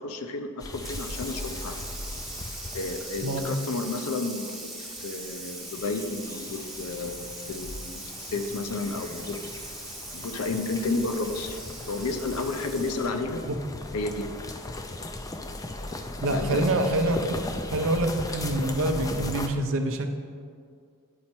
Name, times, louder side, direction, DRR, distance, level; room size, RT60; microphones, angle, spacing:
voice 1, 0.0-1.8 2.7-9.4 10.1-11.6 11.9-13.4 13.9-14.3 16.3-16.6, left 3 dB, 70° left, 7 dB, 0.6 m, -32 dB
sound 1, 0.6-3.9 5.7-19.5, left 2 dB, 15° left, 0.4 m, -38 dB
Water tap faucet / Sink (filling or washing), 0.7-13.2, right 1 dB, ahead, 0.7 m, -40 dB
voice 2, 16.2-17.4 17.7-20.1, right 1 dB, 60° right, 6 dB, 0.6 m, -26 dB
9.5 x 4.3 x 4.4 m, 2.2 s
head